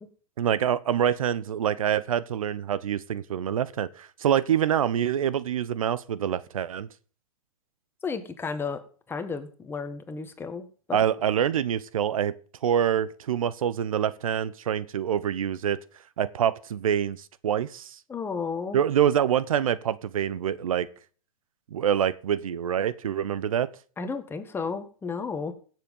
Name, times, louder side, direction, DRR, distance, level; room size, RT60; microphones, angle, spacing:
voice 1, 0.4-6.9 10.9-12.3 12.6-15.8 16.2-18.0 18.7-20.9 21.7-23.7, right 9 dB, 75° right, 1.0 m, -26 dB
voice 2, 8.0-8.8 9.1-11.0 18.1-18.8 24.0-25.5, left 5 dB, 10° left, 1.7 m, -33 dB
16.0 x 7.6 x 5.5 m
hypercardioid pair, 125°, 18 cm